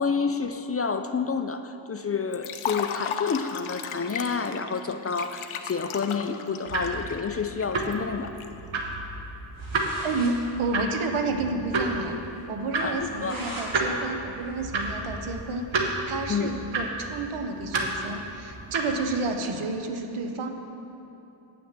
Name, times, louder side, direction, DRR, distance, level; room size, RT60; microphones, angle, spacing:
voice 1, 0.0-8.3 12.8-13.4 16.3-16.5, left 5 dB, 30° left, 8 dB, 0.4 m, -29 dB
Liquid, 2.3-8.5, left 7 dB, 80° left, 0.7 m, -35 dB
sound 1, 6.7-19.3, right 2 dB, 70° right, 1.1 m, -32 dB
sound 2, 9.3-9.4 9.6-10.4 10.7-10.8 11.0-11.1 11.6-11.7 12.0-12.1 12.8-13.7 14.1-15.5, equal, 45° right, 2.2 m, -41 dB
voice 2, 10.0-12.2 12.5-20.5, right 3 dB, 90° right, 5 dB, 0.9 m, -30 dB
9.0 x 6.0 x 7.4 m, 3.0 s
wide cardioid pair, 85°, 49 cm